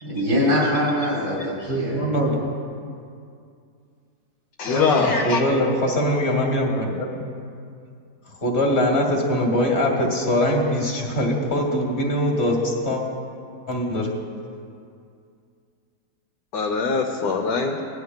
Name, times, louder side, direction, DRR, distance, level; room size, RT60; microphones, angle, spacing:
voice 1, 0.0-2.2, left 1 dB, 75° right, -6 dB, 3.6 m, -23 dB
voice 2, 1.7-2.5 4.7-7.1 8.4-13.0 13.7-14.1, left 1 dB, 40° left, 0 dB, 1.6 m, -22 dB
voice 3, 4.6-5.4 16.5-17.8, left 4 dB, 65° left, 0 dB, 1.3 m, -22 dB
18.5 x 11.5 x 2.2 m, 2.3 s
omnidirectional pair, 1.9 m